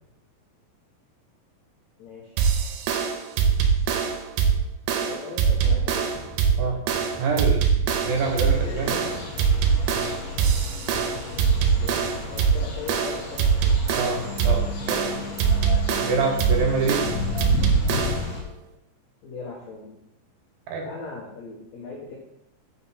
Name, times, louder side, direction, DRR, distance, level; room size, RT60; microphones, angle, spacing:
voice 1, 2.0-2.4 5.0-6.1 11.1-15.2 19.2-20.0 20.8-22.2, left 4 dB, 80° left, -1 dB, 1.6 m, -40 dB
sound 1, 2.4-18.3, right 6 dB, 85° right, 2.8 m, -23 dB
sound 2, 6.1-12.5, left 5 dB, 35° left, 2.0 m, -43 dB
voice 2, 7.2-7.6 8.0-9.0 13.9-15.1 16.0-17.0 20.7-20.9, right 4 dB, 70° right, 1 dB, 2.6 m, -26 dB
sound 3, 8.2-18.4, left 5 dB, 60° left, 1.9 m, -33 dB
5.7 x 5.7 x 5.6 m, 0.78 s
omnidirectional pair, 4.7 m